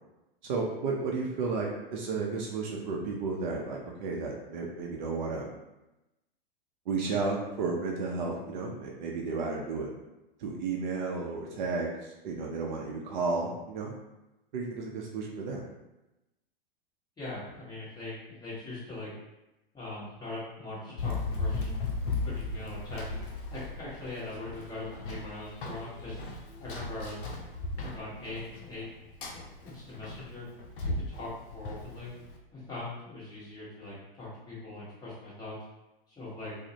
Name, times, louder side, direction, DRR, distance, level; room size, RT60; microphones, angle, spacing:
voice 1, 0.4-5.5 6.9-9.9 10.4-13.9 14.5-15.6, right 4 dB, 50° right, -1 dB, 0.5 m, -33 dB
voice 2, 17.2-19.1 19.7-21.8 22.2-23.2 23.5-26.2 26.6-27.2 27.5-28.9 29.3-30.4 30.8-32.1 32.5-35.5 36.1-36.5, left 2 dB, 15° left, -9 dB, 1.1 m, -41 dB
Run, 21.0-32.4, left 3 dB, 65° left, 0.5 m, -37 dB
2.5 x 2.0 x 2.9 m, 0.97 s
figure-of-eight pair, 100°, 30 cm